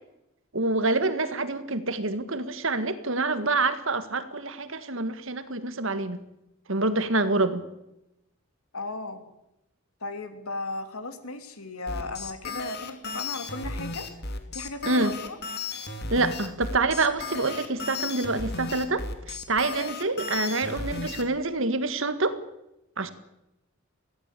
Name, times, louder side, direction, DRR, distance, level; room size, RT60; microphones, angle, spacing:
voice 1, 0.5-6.2 6.7-7.6 14.8-15.1 16.1-22.4 23.0-23.1, right 2 dB, 60° right, 12 dB, 1.7 m, -27 dB
voice 2, 8.7-9.2 10.0-14.1 14.5-15.4, left 2 dB, 80° left, 8 dB, 3.0 m, -36 dB
sound 1, 11.9-21.2, left 3 dB, 45° left, 2.6 m, -34 dB
23.0 x 17.0 x 8.4 m, 0.90 s
head